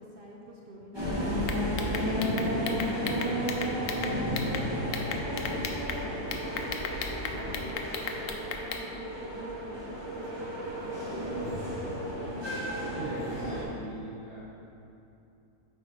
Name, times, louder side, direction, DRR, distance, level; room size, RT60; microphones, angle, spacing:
voice 1, 0.0-1.3 2.0-4.8 5.3-10.5 10.8-11.9, equal, 45° right, -3 dB, 0.8 m, -49 dB
sound 1, 0.9-13.6, equal, 15° right, 1.5 m, -32 dB
sound 2, 1.4-4.6 4.9-6.0 6.3-8.8, left 6 dB, 75° left, 1.1 m, -35 dB
voice 2, 12.9-14.4, right 1 dB, 25° left, -11 dB, 2.0 m, -39 dB
8.2 x 4.9 x 4.8 m, 2.8 s
omnidirectional pair, 1.6 m